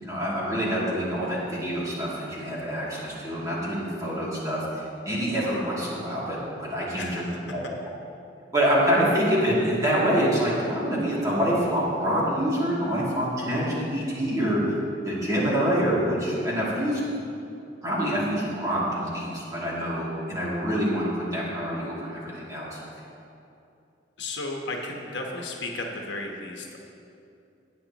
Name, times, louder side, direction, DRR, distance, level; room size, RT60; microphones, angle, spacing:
voice 1, 0.0-7.2 7.5-7.6 8.5-14.6 15.0-17.0 17.8-22.8, equal, 20° right, -7 dB, 2.6 m, -26 dB
voice 2, 24.2-26.8, left 2 dB, 70° left, 1 dB, 1.2 m, -34 dB
18.0 x 8.4 x 3.0 m, 2.6 s
head